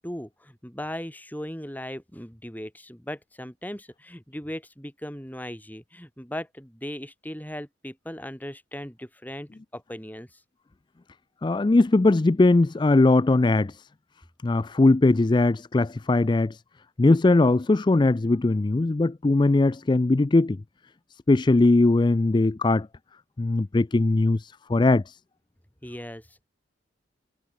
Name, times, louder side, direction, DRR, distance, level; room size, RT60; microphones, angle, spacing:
voice 1, 0.0-10.4 19.5-19.6 25.8-26.4, equal, 10° left, 5.8 m, -38 dB
voice 2, 11.4-13.8 14.4-16.6 17.0-20.6 21.3-22.9 23.4-25.2, left 2 dB, 25° left, 0.4 m, -20 dB
head